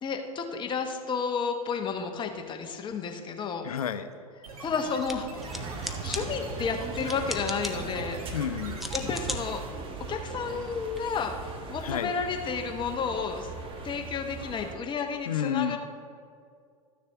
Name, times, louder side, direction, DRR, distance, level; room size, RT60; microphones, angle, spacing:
voice 1, 0.0-3.6 4.6-5.3 5.6-8.2 8.9-9.6 10.0-11.3 11.7-15.8, left 5 dB, 25° left, 4 dB, 1.1 m, -32 dB
voice 2, 3.6-4.1 8.3-8.9 11.8-12.1 15.3-15.8, left 9 dB, 90° left, 11 dB, 0.6 m, -30 dB
sound 1, 4.4-9.6, right 3 dB, 80° right, 1.3 m, -43 dB
sound 2, 4.9-11.0, equal, ahead, 0.7 m, -41 dB
sound 3, 5.4-14.8, right 4 dB, 30° right, 1.1 m, -39 dB
13.0 x 6.6 x 3.5 m, 2.3 s
hypercardioid pair, 105°, 18 cm